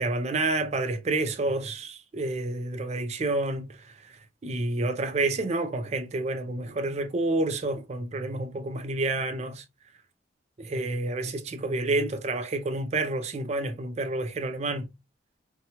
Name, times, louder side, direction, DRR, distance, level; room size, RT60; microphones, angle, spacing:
voice 1, 0.0-3.8 4.4-9.6 10.6-14.9, right 2 dB, 35° right, 0.4 m, -29 dB
2.8 x 2.2 x 2.8 m
head